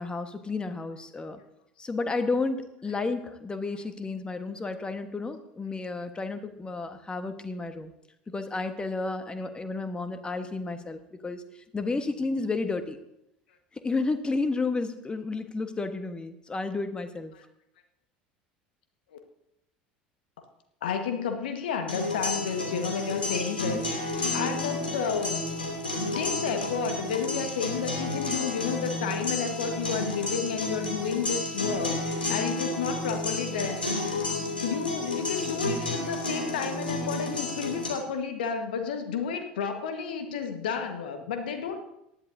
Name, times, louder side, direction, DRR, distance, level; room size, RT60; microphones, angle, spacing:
voice 1, 0.0-1.4 1.8-7.9 8.3-11.4 11.7-13.0 13.7-17.3, left 3 dB, 20° left, 9 dB, 1.3 m, -31 dB
voice 2, 20.8-25.4 26.1-34.2 34.6-41.8, left 6 dB, 70° left, 6 dB, 1.4 m, -31 dB
sound 1, 21.9-37.9, left 2 dB, 85° left, 2.8 m, -31 dB
18.5 x 11.0 x 2.7 m, 0.82 s
figure-of-eight pair, 70°, 5 cm